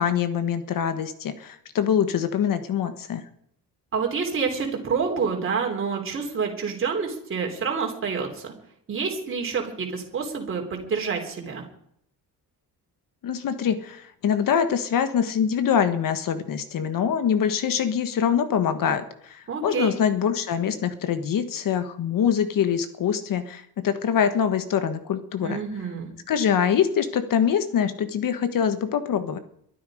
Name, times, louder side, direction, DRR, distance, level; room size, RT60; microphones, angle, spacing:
voice 1, 0.0-3.2 13.2-25.6 26.3-29.4, left 8 dB, 60° left, 10 dB, 1.6 m, -24 dB
voice 2, 3.9-8.5 8.9-11.6 19.5-19.9 25.4-26.1, right 5 dB, 35° right, 1 dB, 3.6 m, -28 dB
23.0 x 12.0 x 5.1 m, 0.70 s
cardioid pair, 180°, 37 cm